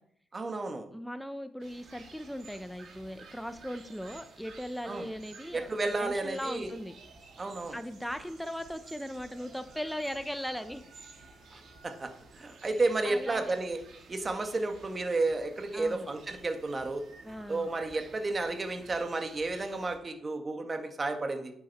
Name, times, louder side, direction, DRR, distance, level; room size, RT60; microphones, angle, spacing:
voice 1, 0.3-0.9 4.9-5.0 5.5-6.7 7.4-7.8 12.0-12.1 12.4-13.8 14.1-17.0 17.5-21.5, right 3 dB, 30° right, 5 dB, 1.7 m, -32 dB
voice 2, 0.9-6.9 7.7-10.8 13.0-13.5 15.7-16.1 17.2-17.7, equal, ahead, 9 dB, 0.7 m, -38 dB
sound 1, 1.6-20.0, right 4 dB, 65° right, 3.1 m, -53 dB
10.5 x 8.8 x 4.2 m, 0.68 s
cardioid pair, 90°, 0 cm